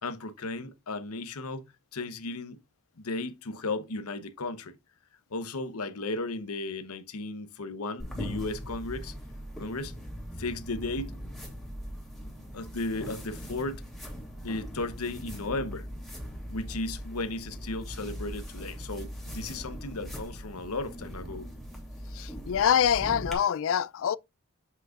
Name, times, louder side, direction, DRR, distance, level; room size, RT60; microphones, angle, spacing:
voice 1, 0.0-1.6 1.9-2.6 3.0-4.7 5.3-9.1 9.6-10.0 10.4-11.1 12.5-13.8 14.4-15.9 16.5-21.5, left 2 dB, 90° left, 0.9 m, -35 dB
sound 1, 8.0-23.3, equal, ahead, 2.7 m, -40 dB
voice 2, 22.1-24.2, left 8 dB, 65° left, 0.3 m, -25 dB
7.5 x 6.4 x 2.4 m
head